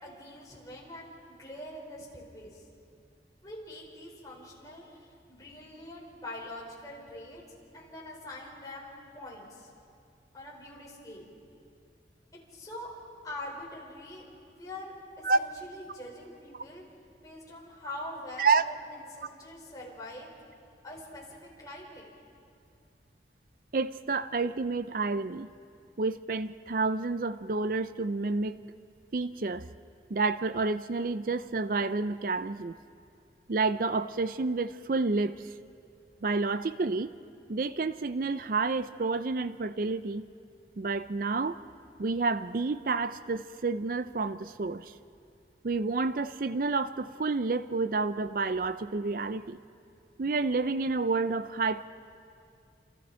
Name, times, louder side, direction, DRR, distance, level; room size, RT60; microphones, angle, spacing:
voice 1, 0.0-2.6 3.4-7.4 7.7-9.7 10.3-11.3 12.5-12.9 13.2-16.8 17.2-20.3 20.8-22.1, left 1 dB, 20° left, -4 dB, 5.2 m, -44 dB
voice 2, 23.7-25.5 26.0-28.6 29.1-29.7 30.1-32.8 33.5-35.5 36.2-37.1 37.5-40.3 40.8-41.6 42.0-44.9 45.6-49.6 50.2-51.9, right 3 dB, 50° right, 13 dB, 0.5 m, -29 dB
28.0 x 28.0 x 4.4 m, 2.4 s
head